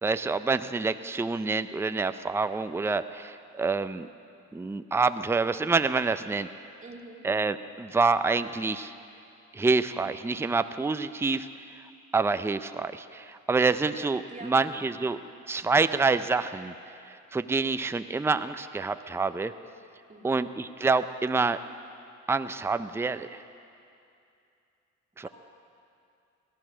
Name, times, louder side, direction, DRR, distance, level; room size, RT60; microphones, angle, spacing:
voice 1, 0.0-4.1 4.5-6.5 7.2-8.9 9.5-11.5 12.1-15.2 15.5-16.7 17.1-19.5 20.2-21.6 22.3-23.4 25.2-25.3, right 4 dB, 10° right, 11 dB, 0.5 m, -27 dB
voice 2, 6.8-7.3 14.3-15.0 20.1-20.4 25.2-25.3, right 2 dB, 25° right, 0 dB, 2.1 m, -45 dB
18.5 x 12.5 x 6.2 m, 2.5 s
cardioid pair, 90°, 30 cm